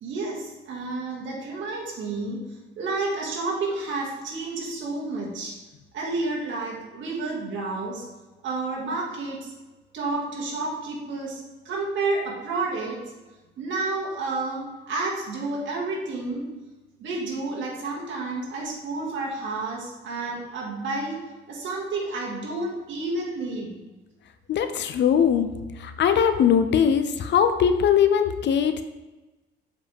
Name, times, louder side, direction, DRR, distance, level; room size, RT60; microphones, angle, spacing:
voice 1, 0.0-2.4 2.8-5.6 5.9-8.0 8.4-9.5 9.9-13.0 13.6-16.5 17.0-21.2 21.5-23.8, right 3 dB, 70° right, -3 dB, 2.1 m, -30 dB
voice 2, 24.5-25.5 25.8-28.7, left 8 dB, 65° left, 9 dB, 0.6 m, -20 dB
7.3 x 5.2 x 3.5 m, 1.1 s
cardioid pair, 90°, 20 cm